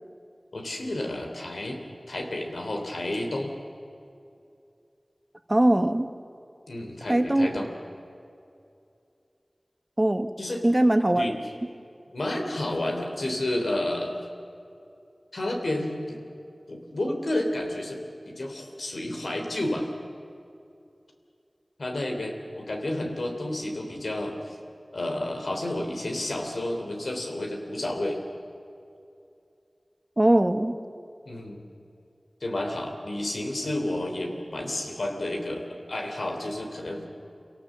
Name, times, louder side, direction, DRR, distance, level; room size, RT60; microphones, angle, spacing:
voice 1, 0.5-1.8 2.1-3.5 6.7-7.7 10.4-10.6 11.2-11.3 12.1-14.1 15.3-16.2 16.7-19.9 21.8-24.6 24.9-28.2 31.2-31.6 32.4-37.0, left 1 dB, 90° left, 2 dB, 3.1 m, -31 dB
voice 2, 5.5-6.1 7.1-7.5 10.0-10.3 10.6-11.3 30.2-30.7, right 1 dB, 30° right, 9 dB, 1.1 m, -21 dB
26.5 x 17.5 x 7.4 m, 2.6 s
wide cardioid pair, 40°, 0 cm